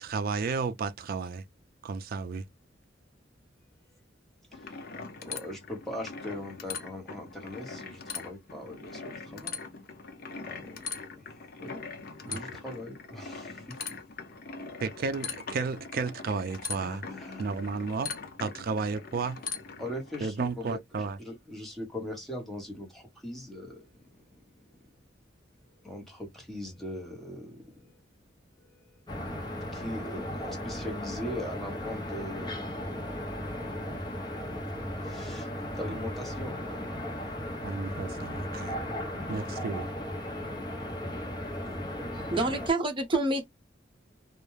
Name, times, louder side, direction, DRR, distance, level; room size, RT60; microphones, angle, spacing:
voice 1, 0.0-1.4 1.8-2.4 12.3-12.4 14.8-17.0 17.4-18.1 18.4-19.4 20.2-21.2 37.6-38.7 39.3-39.9, right 4 dB, 50° right, 0.3 m, -32 dB
sound 1, 4.5-20.3, left 5 dB, 55° left, 0.5 m, -41 dB
voice 2, 4.5-9.6 10.5-11.8 12.2-14.0 16.8-17.5 19.8-24.1 24.7-24.8 25.8-28.0 28.6-29.0 29.6-33.1 33.6-34.0 35.0-37.2 37.6-37.8 38.8-39.3, left 1 dB, ahead, 0.9 m, -41 dB
sound 2, 29.1-42.7, left 1 dB, 25° left, 0.8 m, -36 dB
voice 3, 42.1-43.5, right 2 dB, 25° right, 0.7 m, -28 dB
2.3 x 2.1 x 3.0 m
head